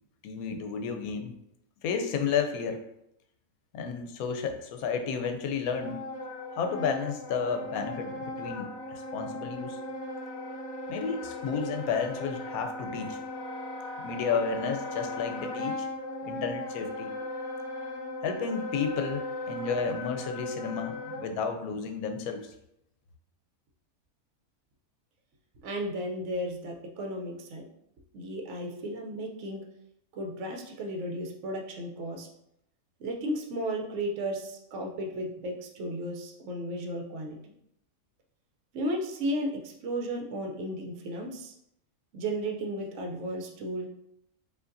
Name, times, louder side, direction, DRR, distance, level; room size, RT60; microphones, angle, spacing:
voice 1, 0.2-1.3 1.8-2.9 3.7-6.0 6.5-9.8 10.9-13.2 14.0-15.9 16.2-17.2 18.2-22.5, left 6 dB, 85° left, 6 dB, 1.0 m, -32 dB
Wind instrument woodwind instrument, 5.8-21.3, left 1 dB, 50° left, 1.3 m, -37 dB
voice 2, 25.6-27.6 28.1-29.6 30.1-32.3 33.0-37.4 38.7-41.5 42.1-43.9, right 1 dB, 65° right, 2 dB, 0.9 m, -34 dB
4.9 x 2.6 x 2.5 m, 0.78 s
omnidirectional pair, 1.5 m